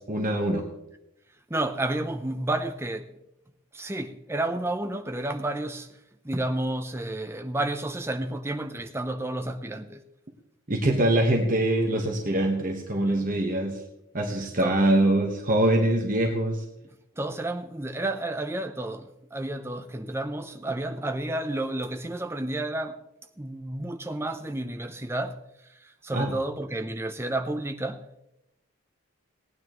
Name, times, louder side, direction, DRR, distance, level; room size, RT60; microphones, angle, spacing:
voice 1, 0.1-0.7 10.7-13.8 14.1-16.6 26.1-26.3, right 1 dB, 40° right, 1.2 m, -24 dB
voice 2, 1.5-3.2 3.7-5.9 6.2-10.0 14.6-14.8 17.2-23.0 23.4-25.4 25.7-28.1, right 1 dB, 10° right, 0.6 m, -31 dB
19.0 x 9.5 x 3.1 m
head